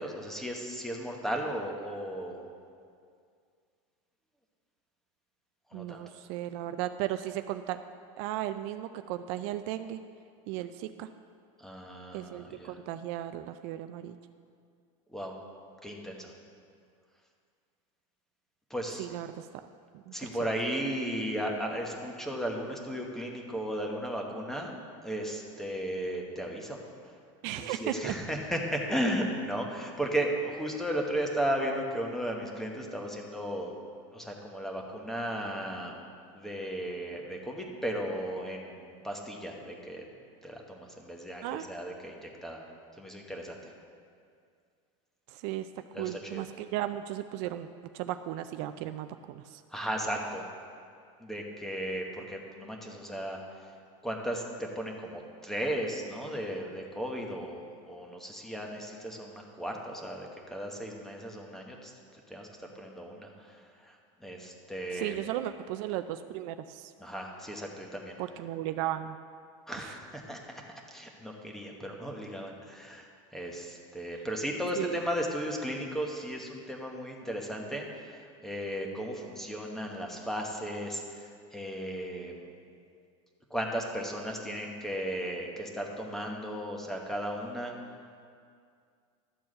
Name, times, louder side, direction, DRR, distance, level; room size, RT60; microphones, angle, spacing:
voice 1, 0.0-2.4 5.7-6.0 11.6-12.7 15.1-15.3 15.8-16.3 18.7-19.1 20.1-24.8 25.0-26.8 27.5-33.7 34.1-35.9 36.3-40.0 40.4-41.4 41.7-42.6 43.0-43.6 45.9-46.4 49.7-50.5 51.2-53.4 54.0-57.6 57.9-61.9 62.3-62.5 62.7-65.2 67.0-68.2 69.7-70.4 70.9-82.4 83.5-87.7, equal, ahead, 1 dB, 1.1 m, -35 dB
voice 2, 5.7-7.8 8.2-10.0 10.5-11.1 12.1-14.2 19.0-19.5 19.9-20.3 27.4-28.1 41.4-41.6 45.3-45.7 46.0-47.7 47.9-49.6 64.9-66.9 68.2-69.2 69.8-69.9 74.8-75.0, right 13 dB, 60° right, 10 dB, 0.4 m, -35 dB
12.5 x 4.5 x 7.5 m, 2.2 s
supercardioid pair, 140°, 16 cm